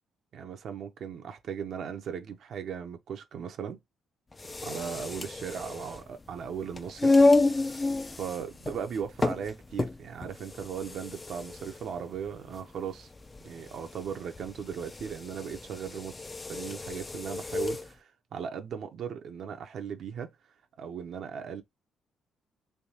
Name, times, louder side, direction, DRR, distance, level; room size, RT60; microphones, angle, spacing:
voice 1, 0.3-3.8 4.6-7.1 7.4-7.8 8.2-13.1 13.4-16.2 16.5-20.3 20.8-21.6, right 7 dB, 65° right, 0.6 m, -37 dB
sound 1, 4.3-17.9, left 3 dB, 25° left, 0.4 m, -30 dB
3.4 x 2.7 x 2.8 m
cardioid pair, 90°, 0 cm